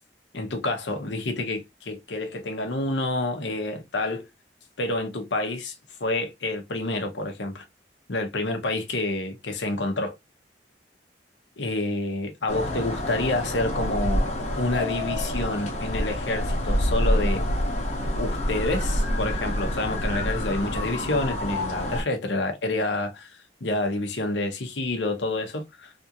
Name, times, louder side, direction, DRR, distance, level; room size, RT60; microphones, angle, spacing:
voice 1, 0.3-4.2 4.8-5.7 6.0-7.6 8.1-10.1 11.6-14.2 14.6-17.4 18.1-23.3 23.6-25.9, left 2 dB, 85° left, 0.9 m, -28 dB
sound 1, 12.5-22.0, left 1 dB, 40° left, 1.0 m, -27 dB
3.5 x 2.5 x 2.7 m
head